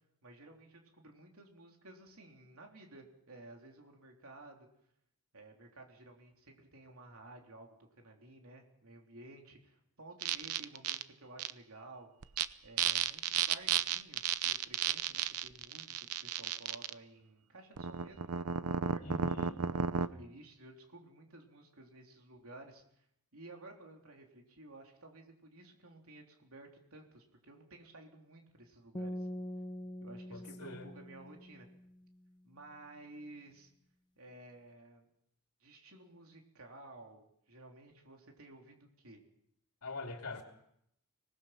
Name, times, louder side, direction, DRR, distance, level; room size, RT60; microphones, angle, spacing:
voice 1, 0.2-4.7 5.3-12.1 12.6-19.0 19.7-23.0 23.3-29.3 30.0-31.7 32.4-33.7 34.2-35.1 35.6-39.2, right 2 dB, 70° right, 2 dB, 3.5 m, -54 dB
sound 1, 10.2-11.0 11.4-11.5 12.2-12.4 12.8-16.9 17.8-20.1, right 8 dB, 85° right, 0.8 m, -33 dB
voice 2, 19.0-19.6 30.3-30.9 39.8-40.4, left 2 dB, 85° left, 3 dB, 2.7 m, -43 dB
sound 2, 28.9-32.1, left 1 dB, 20° left, 0.8 m, -44 dB
25.5 x 19.0 x 5.9 m, 0.75 s
head